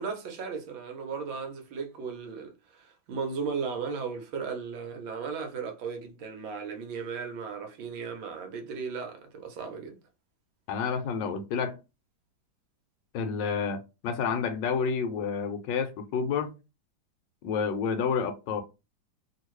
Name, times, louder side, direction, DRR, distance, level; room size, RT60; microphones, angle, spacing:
voice 1, 0.0-10.0, right 5 dB, 75° right, 1.5 m, -36 dB
voice 2, 10.7-11.8 13.1-16.5 17.4-18.6, left 6 dB, 70° left, 1.2 m, -29 dB
3.1 x 2.8 x 3.0 m
omnidirectional pair, 2.1 m